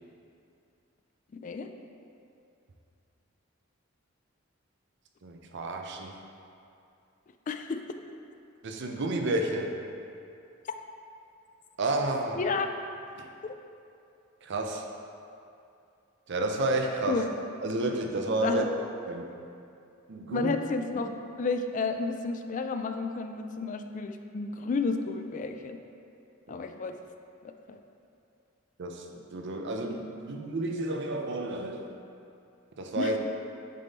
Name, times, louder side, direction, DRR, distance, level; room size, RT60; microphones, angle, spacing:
voice 1, 1.3-1.7 7.5-7.8 12.4-12.7 13.4-13.5 17.1-17.3 18.4-18.7 20.3-21.1 21.4-25.8 26.5-27.0 27.4-27.8 33.0-33.2, left 4 dB, 40° left, 7 dB, 0.3 m, -31 dB
voice 2, 5.2-6.2 8.6-9.8 11.8-12.4 13.2-13.3 14.4-14.8 16.3-17.2 17.6-18.6 19.0-19.3 20.1-20.5 28.8-29.0 29.3-31.9 32.8-33.2, right 2 dB, 60° right, 3 dB, 0.6 m, -30 dB
7.4 x 3.5 x 4.0 m, 2.6 s
head